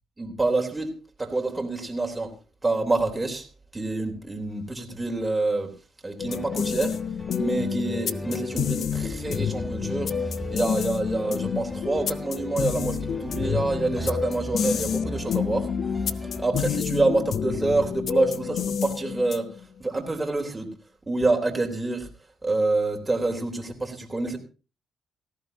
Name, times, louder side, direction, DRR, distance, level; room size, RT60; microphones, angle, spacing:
voice 1, 0.2-0.9 1.2-2.3 2.6-3.5 3.7-5.7 6.0-7.0 7.4-15.7 16.4-19.5 19.8-20.7 21.1-22.1 22.4-24.4, right 2 dB, 15° right, 2 dB, 3.6 m, -27 dB
sound 1, 6.2-19.6, left 7 dB, 60° left, 0.8 m, -29 dB
sound 2, 6.3-16.5, equal, 5° left, 1.6 m, -38 dB
18.0 x 14.5 x 2.9 m, 0.32 s
cardioid pair, 90°, 0 cm